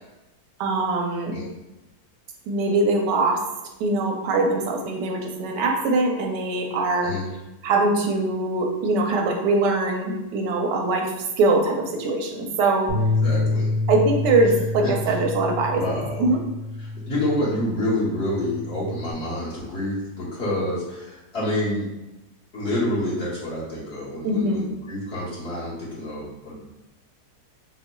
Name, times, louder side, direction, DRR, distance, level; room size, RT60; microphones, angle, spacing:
voice 1, 0.6-1.3 2.5-3.4 3.8-7.1 7.6-11.1 11.4-12.9 13.9-15.8 16.2-16.4 24.2-24.6, right 2 dB, 85° right, 2 dB, 1.2 m, -22 dB
Bass guitar, 12.9-19.1, left 2 dB, 25° right, 0.6 m, -27 dB
voice 2, 13.2-13.7 14.8-15.1 15.7-16.3 16.8-21.9 22.5-26.6, left 1 dB, 45° left, -8 dB, 1.1 m, -28 dB
5.7 x 2.0 x 2.2 m, 1.0 s
omnidirectional pair, 1.8 m